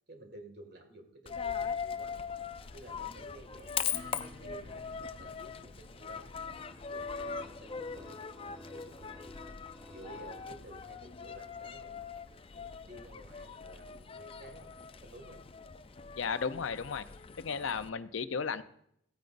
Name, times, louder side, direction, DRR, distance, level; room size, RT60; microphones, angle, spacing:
voice 1, 0.1-2.2 2.7-4.0 4.4-4.9 5.2-6.3 6.9-9.4 9.9-12.1 12.8-15.4, right 1 dB, 50° right, 5 dB, 2.0 m, -53 dB
Coin (dropping), 1.3-17.9, left 6 dB, 30° left, 0.4 m, -41 dB
Acoustic guitar / Strum, 3.9-11.1, left 1 dB, 85° right, 2.5 m, -57 dB
sound 1, 6.4-11.1, left 1 dB, 5° right, 3.5 m, -52 dB
voice 2, 16.2-17.1 17.4-18.6, left 5 dB, 75° left, 12 dB, 0.6 m, -34 dB
15.5 x 9.2 x 2.5 m, 0.70 s
head